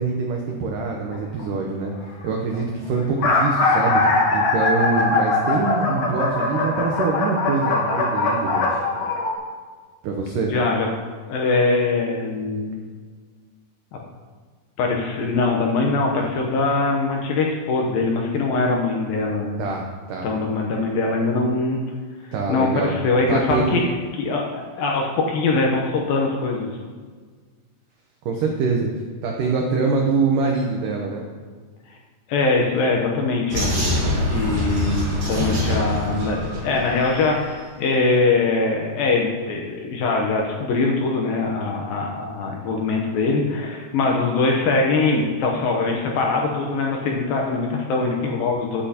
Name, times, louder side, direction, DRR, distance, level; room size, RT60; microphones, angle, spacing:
voice 1, 0.0-8.8 10.0-10.5 19.6-20.3 22.3-22.9 23.3-23.8 28.3-28.9 29.2-31.3, right 4 dB, 90° right, 1 dB, 1.8 m, -24 dB
sound 1, 1.1-1.4 2.3-2.4 2.5-2.6 3.0-9.3, left 3 dB, 90° left, 1.4 m, -21 dB
voice 2, 10.5-10.9 11.3-12.8 14.8-19.6 20.2-21.8 22.5-23.8 24.2-26.7 32.3-33.8 34.3-48.8, left 3 dB, 70° left, 0 dB, 2.3 m, -22 dB
Vehicle, 33.5-37.4, left 1 dB, 50° right, 3.3 m, -24 dB
13.0 x 8.7 x 2.9 m, 1.5 s
omnidirectional pair, 5.0 m